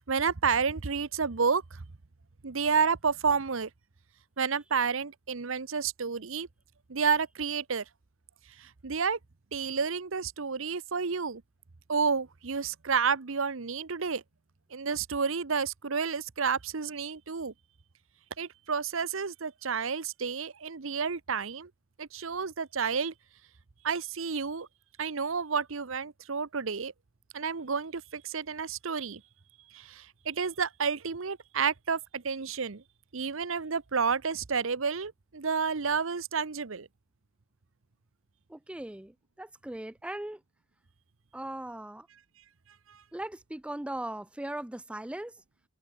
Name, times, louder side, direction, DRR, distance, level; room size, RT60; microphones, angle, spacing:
voice 1, 0.1-1.8 2.4-3.7 4.4-6.5 6.9-7.8 8.6-9.2 9.5-11.4 11.9-14.2 14.7-17.5 18.4-21.7 22.0-23.1 23.8-24.7 25.0-26.9 27.3-29.2 29.7-32.8 33.1-36.9 42.9-43.0, right 5 dB, 70° right, 0.9 m, -30 dB
voice 2, 38.5-40.4 41.3-42.1 43.1-45.3, right 1 dB, 5° right, 0.3 m, -39 dB
head